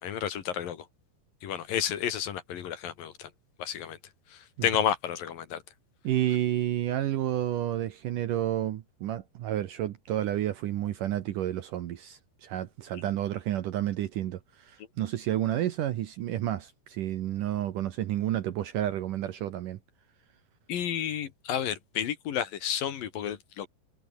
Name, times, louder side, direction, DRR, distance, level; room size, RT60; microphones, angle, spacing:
voice 1, 0.0-0.8 1.4-3.3 3.6-4.0 4.6-5.6 20.7-23.7, left 9 dB, 60° left, 3.3 m, -31 dB
voice 2, 6.0-19.8, right 12 dB, 65° right, 2.2 m, -30 dB
omnidirectional pair, 4.8 m